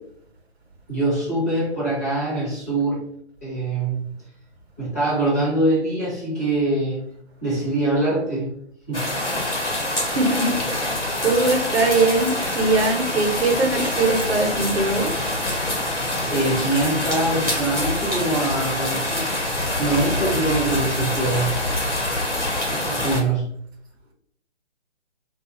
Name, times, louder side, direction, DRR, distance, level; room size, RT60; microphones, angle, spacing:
voice 1, 0.9-3.0 3.4-4.0 4.8-7.1 7.4-8.5 8.9-9.1 15.7-15.9 16.2-19.3 19.8-21.5 22.7-23.5, right 2 dB, 15° left, -8 dB, 0.6 m, -23 dB
sound 1, 8.9-23.2, left 1 dB, 90° left, 1.0 m, -25 dB
voice 2, 10.0-15.1, right 3 dB, 65° right, 3 dB, 0.8 m, -21 dB
2.8 x 2.3 x 2.8 m, 0.68 s
figure-of-eight pair, 140°, 35 cm